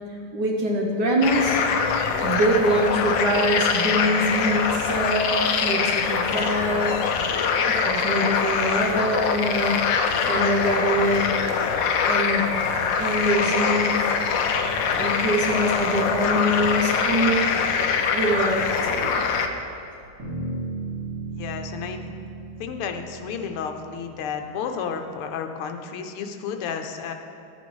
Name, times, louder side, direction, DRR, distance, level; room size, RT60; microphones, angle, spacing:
voice 1, 0.3-1.6 2.2-7.1 7.6-9.9 10.3-11.4 12.1-12.5 13.0-14.2 15.0-17.4 18.1-19.2, equal, 60° right, -1 dB, 1.3 m, -24 dB
sound 1, 1.2-19.5, left 6 dB, 70° left, 1.2 m, -23 dB
Bass guitar, 20.2-24.6, right 3 dB, 45° right, 3.1 m, -35 dB
voice 2, 21.4-22.0 22.6-27.1, left 6 dB, 85° left, 6 dB, 1.6 m, -32 dB
12.0 x 9.5 x 3.1 m, 2.5 s
omnidirectional pair, 2.4 m